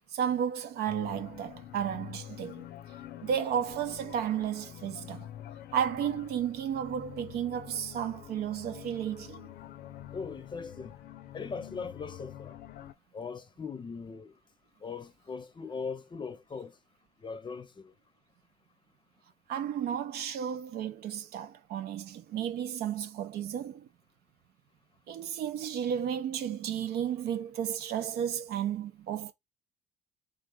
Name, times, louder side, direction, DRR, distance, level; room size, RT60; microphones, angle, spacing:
voice 1, 0.1-2.7 3.2-5.3 5.7-9.5 19.5-23.9 25.1-29.3, right 9 dB, 70° right, 0.7 m, -33 dB
sound 1, 0.9-12.9, left 12 dB, 70° left, 0.6 m, -46 dB
voice 2, 10.1-10.9 11.3-12.6 13.1-14.3 14.8-16.7 17.2-17.9, left 5 dB, 25° left, 0.6 m, -39 dB
3.7 x 3.3 x 3.7 m
cardioid pair, 110°, 17 cm